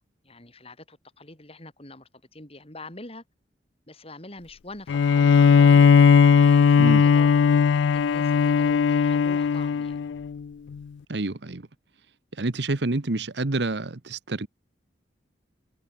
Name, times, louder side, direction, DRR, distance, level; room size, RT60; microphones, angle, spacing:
voice 1, 0.2-3.2 3.9-6.1 6.4-7.3 7.9-10.0, left 2 dB, 35° left, 7.4 m, -44 dB
Bowed string instrument, 4.9-10.4, left 6 dB, 80° left, 0.4 m, -18 dB
voice 2, 11.1-11.7 12.4-14.5, right 2 dB, 70° right, 1.1 m, -28 dB
head